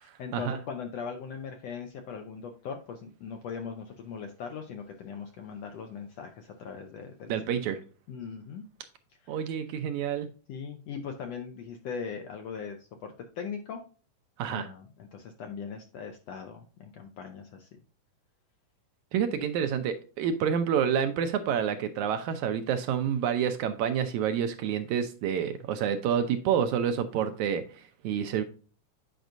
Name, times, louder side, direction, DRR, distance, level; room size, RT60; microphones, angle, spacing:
voice 1, 0.2-7.6 8.1-8.7 9.2-9.4 10.5-13.8 14.5-17.7 19.4-19.5, left 6 dB, 75° left, 5 dB, 1.5 m, -40 dB
voice 2, 7.3-7.8 9.3-10.3 14.4-14.7 19.1-28.4, right 8 dB, 75° right, 8 dB, 1.8 m, -28 dB
9.0 x 5.2 x 2.6 m, 0.38 s
omnidirectional pair, 3.8 m